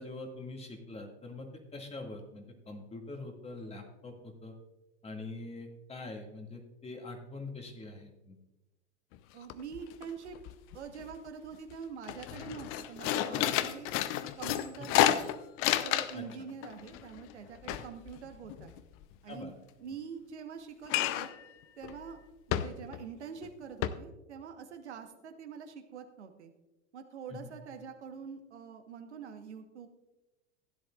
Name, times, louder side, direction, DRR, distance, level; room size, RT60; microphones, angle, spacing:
voice 1, 0.0-4.5 5.0-8.4 16.1-16.2 19.3-19.5 27.3-27.5, left 2 dB, 15° left, 2 dB, 2.0 m, -44 dB
sound 1, 9.1-9.2 9.5-10.0 10.3-11.1 11.5-11.7 12.0-16.3 16.6-19.0 20.9-21.4 21.8-22.0 22.5-23.1 23.4-23.5 23.8-23.9, left 12 dB, 40° left, 0.6 m, -31 dB
voice 2, 9.3-10.4 10.7-13.9 14.4-15.3 15.8-18.7 19.2-19.5 19.8-21.3 21.8-22.2 22.5-26.5 26.9-29.9, right 6 dB, 70° right, 6 dB, 1.2 m, -45 dB
16.0 x 10.5 x 2.4 m, 1.0 s
figure-of-eight pair, 85°, 35 cm